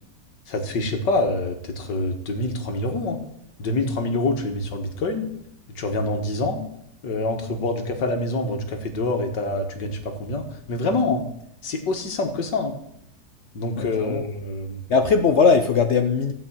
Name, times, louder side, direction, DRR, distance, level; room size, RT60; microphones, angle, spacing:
voice 1, 0.5-3.2 3.6-5.3 5.8-6.6 7.0-11.2 11.6-12.7 13.5-14.8, left 2 dB, 90° left, 2.2 m, -26 dB
voice 2, 13.7-14.3 14.9-16.3, left 5 dB, 60° left, 0.7 m, -19 dB
15.5 x 5.4 x 8.8 m
omnidirectional pair, 1.9 m